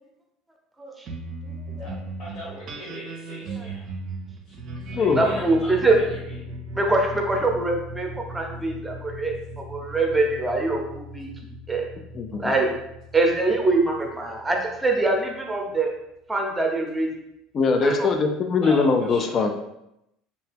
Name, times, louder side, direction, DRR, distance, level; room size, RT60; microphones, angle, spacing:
sound 1, 1.0-15.7, right 1 dB, 50° right, 0.5 m, -38 dB
voice 1, 2.2-3.8 4.9-6.2 18.6-19.5, left 1 dB, 60° left, -6 dB, 1.0 m, -39 dB
voice 2, 5.2-6.0 6.7-11.3 11.7-11.8 12.4-12.7 13.1-15.9 16.3-17.1 17.8-18.1, right 2 dB, 10° right, 1 dB, 0.7 m, -24 dB
voice 3, 12.1-12.5 17.5-19.5, left 4 dB, 40° left, 5 dB, 0.3 m, -21 dB
2.8 x 2.2 x 3.3 m, 0.83 s
supercardioid pair, 110°, 0 cm